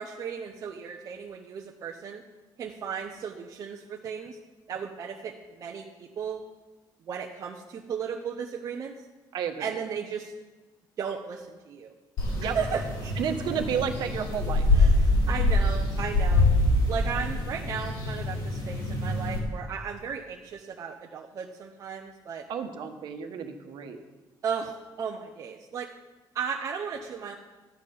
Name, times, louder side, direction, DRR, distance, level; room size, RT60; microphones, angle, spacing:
voice 1, 0.0-2.2 2.6-4.4 4.7-6.4 7.1-8.9 9.6-10.3 11.0-11.9 12.5-13.1 14.7-16.5 16.9-22.4 24.4-25.9 26.3-27.3, right 6 dB, 40° right, 1 dB, 0.8 m, -35 dB
voice 2, 9.3-9.7 12.4-12.6 13.2-14.7 22.5-24.0, right 7 dB, 65° right, 5 dB, 1.3 m, -31 dB
sound 1, 12.2-19.4, left 2 dB, 55° left, 3.6 m, -25 dB
13.0 x 8.8 x 5.5 m, 1.2 s
cardioid pair, 170°, 8 cm